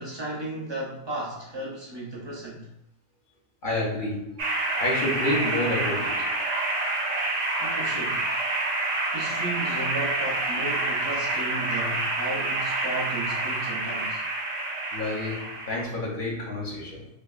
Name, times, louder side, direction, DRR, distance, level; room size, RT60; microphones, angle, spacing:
voice 1, 0.0-2.7 7.6-8.3 9.1-14.2, right 2 dB, 35° right, -4 dB, 0.5 m, -34 dB
voice 2, 3.6-6.3 14.9-17.1, left 1 dB, 55° left, -4 dB, 1.0 m, -29 dB
sound 1, 4.4-15.8, right 2 dB, 85° right, 0.9 m, -28 dB
3.3 x 2.9 x 2.4 m, 0.79 s
omnidirectional pair, 1.1 m